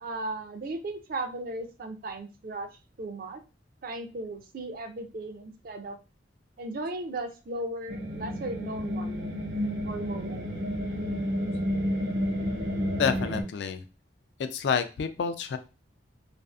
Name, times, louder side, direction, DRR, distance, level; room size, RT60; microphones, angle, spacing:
voice 1, 0.0-2.7 3.0-3.4 3.8-6.0 6.6-9.5 9.8-10.5, right 2 dB, 50° right, 7 dB, 0.4 m, -36 dB
sound 1, 7.9-13.4, equal, 70° right, 0.9 m, -30 dB
voice 2, 13.0-13.8 14.4-15.6, left 6 dB, 65° left, 10 dB, 0.3 m, -28 dB
2.6 x 2.4 x 2.3 m, 0.31 s
head